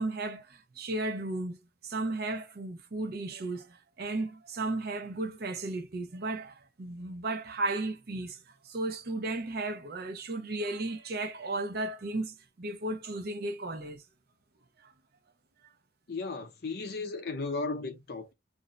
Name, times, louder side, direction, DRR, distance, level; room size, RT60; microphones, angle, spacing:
voice 1, 0.0-1.6 1.8-14.0 14.8-14.9, right 2 dB, 50° right, 0.6 m, -35 dB
voice 2, 16.1-18.3, left 3 dB, 55° left, 0.6 m, -35 dB
2.6 x 2.0 x 3.8 m
head